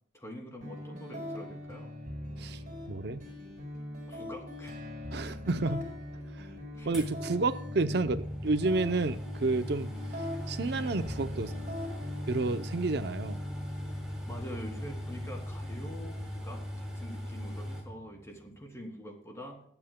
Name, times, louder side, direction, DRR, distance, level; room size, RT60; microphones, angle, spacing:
voice 1, 0.1-1.9 4.1-4.7 6.8-6.9 14.2-19.6, equal, 15° left, 1 dB, 2.8 m, -45 dB
sound 1, 0.6-18.6, left 1 dB, 50° right, 5.0 m, -42 dB
voice 2, 2.9-3.3 5.1-5.9 6.3-6.5 6.9-9.9 10.5-11.5 12.3-13.4, right 3 dB, 65° right, 11 dB, 0.6 m, -30 dB
sound 2, 6.9-17.8, left 1 dB, 5° right, 4.5 m, -40 dB
20.5 x 8.8 x 2.2 m, 0.63 s
head